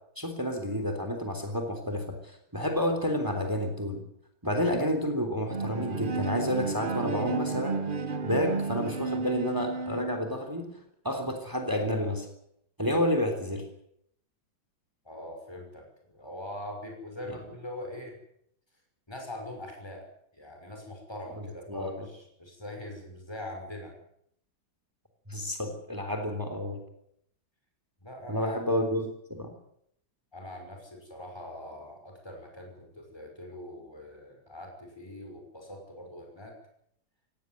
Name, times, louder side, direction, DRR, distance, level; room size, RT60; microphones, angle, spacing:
voice 1, 0.2-4.0 4.4-7.8 8.2-10.7 11.0-12.3 12.8-13.6 17.3-17.4 21.7-22.1 25.3-26.8 28.3-29.5, equal, 10° right, 6 dB, 3.3 m, -30 dB
Bowed string instrument, 5.5-10.4, right 4 dB, 35° right, 0.9 m, -32 dB
voice 2, 15.0-18.2 19.1-20.1 20.3-23.9 28.0-28.5 30.3-36.5, left 1 dB, 10° left, 2 dB, 5.9 m, -42 dB
17.5 x 17.5 x 9.3 m, 0.71 s
omnidirectional pair, 2.1 m